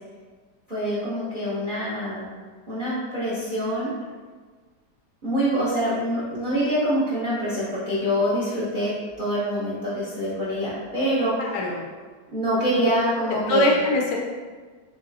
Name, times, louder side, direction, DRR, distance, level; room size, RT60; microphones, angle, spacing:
voice 1, 0.7-2.3 2.7-3.9 5.2-11.5 12.3-13.8, equal, 40° right, -10 dB, 0.7 m, -25 dB
voice 2, 11.4-11.8 13.5-14.2, left 1 dB, 75° left, -1 dB, 1.3 m, -22 dB
3.9 x 3.3 x 2.6 m, 1.5 s
omnidirectional pair, 2.0 m